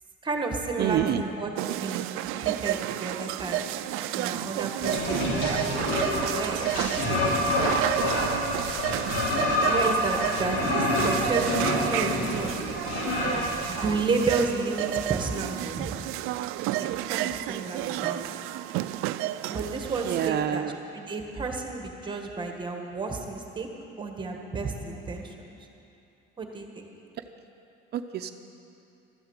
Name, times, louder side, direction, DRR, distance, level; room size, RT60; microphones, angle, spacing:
voice 1, 0.2-3.6 4.1-5.7 6.3-7.3 9.6-12.5 13.7-16.0 16.8-18.3 19.5-20.7 20.9-23.7 24.0-25.6 26.4-26.9, right 4 dB, 20° right, 3 dB, 1.5 m, -32 dB
voice 2, 0.8-1.2 4.9-5.3 17.7-18.1 20.0-20.7 27.9-28.3, right 10 dB, 50° right, 7 dB, 0.7 m, -28 dB
sound 1, 1.6-20.3, right 14 dB, 85° right, 0.5 m, -31 dB
sound 2, 4.8-14.3, left 1 dB, 85° left, 3.7 m, -27 dB
13.5 x 9.9 x 8.9 m, 2.9 s
cardioid pair, 145°, 21 cm